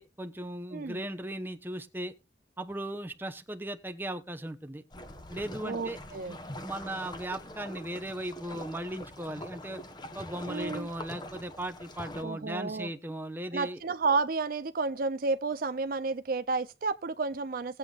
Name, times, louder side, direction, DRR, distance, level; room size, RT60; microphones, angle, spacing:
voice 1, 0.0-2.1 2.6-4.8 5.3-6.0 6.3-9.8 10.1-13.8, right 1 dB, 10° right, 0.9 m, -37 dB
sound 1, 4.9-12.2, left 1 dB, 25° left, 1.1 m, -44 dB
voice 2, 5.6-6.4 10.5-10.9 12.2-12.9 13.5-17.8, right 4 dB, 50° right, 0.5 m, -31 dB
19.0 x 8.3 x 2.5 m
head